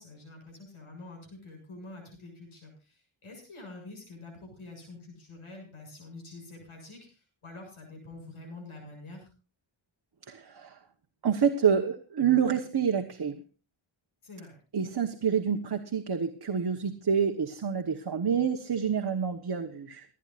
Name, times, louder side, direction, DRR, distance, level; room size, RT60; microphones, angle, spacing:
voice 1, 0.0-9.3 14.2-14.5, left 2 dB, 85° left, 1 dB, 7.1 m, -47 dB
voice 2, 10.3-10.8 11.2-13.4 14.7-20.0, right 7 dB, 50° right, 4 dB, 1.3 m, -27 dB
29.5 x 9.9 x 2.5 m, 0.32 s
wide cardioid pair, 100°, 48 cm